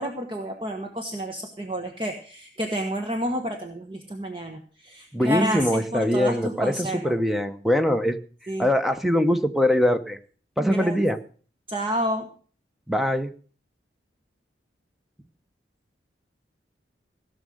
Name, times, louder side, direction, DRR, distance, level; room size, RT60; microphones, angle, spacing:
voice 1, 0.0-7.1 8.5-8.7 10.6-11.0 11.7-12.3, equal, 30° right, 4 dB, 1.3 m, -30 dB
voice 2, 5.1-8.2 8.6-10.2 10.6-11.2 12.9-13.3, equal, ahead, 8 dB, 0.8 m, -22 dB
16.5 x 6.4 x 7.7 m, 0.42 s
head